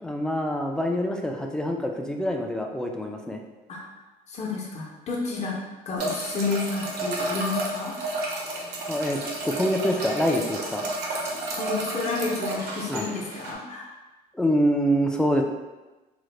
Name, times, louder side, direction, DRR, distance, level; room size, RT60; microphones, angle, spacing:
voice 1, 0.0-3.4 8.9-10.9 12.9-13.1 14.3-15.4, equal, 5° left, 3 dB, 0.3 m, -25 dB
voice 2, 4.3-5.6 5.9-8.2 11.1-11.2 11.5-13.9, left 4 dB, 40° left, -1 dB, 0.8 m, -31 dB
sound 1, 6.0-13.5, right 2 dB, 75° right, 0.7 m, -31 dB
3.7 x 2.0 x 3.2 m, 1.1 s
cardioid pair, 110°, 17 cm